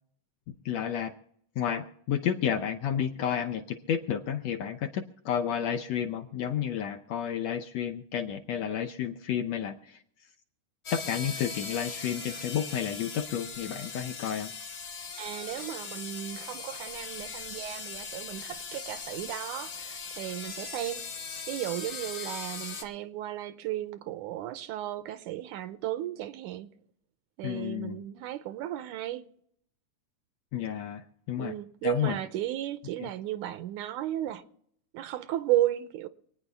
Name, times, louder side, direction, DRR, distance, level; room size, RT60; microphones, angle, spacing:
voice 1, 0.5-1.1 1.6-10.0 10.9-14.5 27.4-28.0 30.5-31.5 31.8-32.2 33.0-33.1, left 9 dB, 70° left, 1.7 m, -31 dB
sound 1, 10.9-22.8, left 5 dB, 45° left, 1.9 m, -40 dB
voice 2, 15.2-21.0 21.5-26.7 27.4-29.2 31.4-34.4 34.9-36.1, right 13 dB, 80° right, 2.1 m, -34 dB
27.5 x 9.7 x 3.5 m
omnidirectional pair, 3.7 m